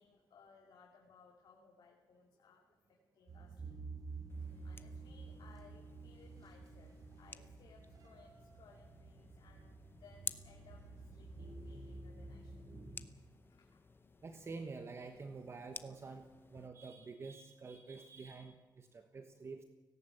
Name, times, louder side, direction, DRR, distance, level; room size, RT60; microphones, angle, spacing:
voice 1, 0.0-2.6 2.9-3.8 4.6-12.7 13.0-13.1 13.5-13.8, left 5 dB, 80° left, -2 dB, 2.7 m, -64 dB
sound 1, 3.3-13.1, right 3 dB, 50° right, 3.3 m, -50 dB
sound 2, 4.3-16.7, left 4 dB, 30° left, 0.7 m, -54 dB
voice 2, 14.2-16.3 16.5-19.6, right 4 dB, 35° right, 7 dB, 1.2 m, -48 dB
18.0 x 17.0 x 8.7 m, 1.2 s
wide cardioid pair, 150°, 8 cm